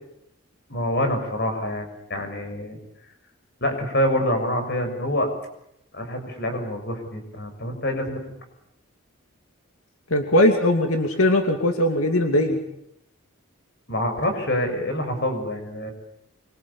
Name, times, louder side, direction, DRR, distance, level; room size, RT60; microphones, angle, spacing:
voice 1, 0.7-2.8 3.6-5.3 5.9-8.2 13.9-15.9, left 1 dB, 50° left, 5 dB, 6.8 m, -26 dB
voice 2, 10.1-12.6, left 1 dB, 90° left, 4 dB, 2.7 m, -20 dB
25.0 x 24.0 x 8.6 m, 0.80 s
head